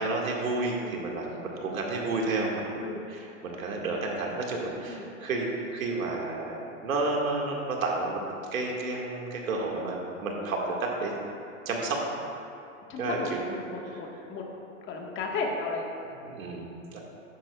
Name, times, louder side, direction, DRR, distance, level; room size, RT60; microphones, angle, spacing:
voice 1, 0.0-2.7 3.4-6.6 6.8-8.2 8.5-11.1 11.7-12.0 13.0-13.4 16.2-17.0, right 3 dB, 80° right, -1 dB, 2.1 m, -31 dB
voice 2, 0.8-1.4 2.8-3.0 4.9-5.1 12.9-14.5 14.9-15.9, left 3 dB, 30° left, 0 dB, 1.6 m, -34 dB
13.0 x 10.0 x 2.4 m, 2.6 s
hypercardioid pair, 120°, 41 cm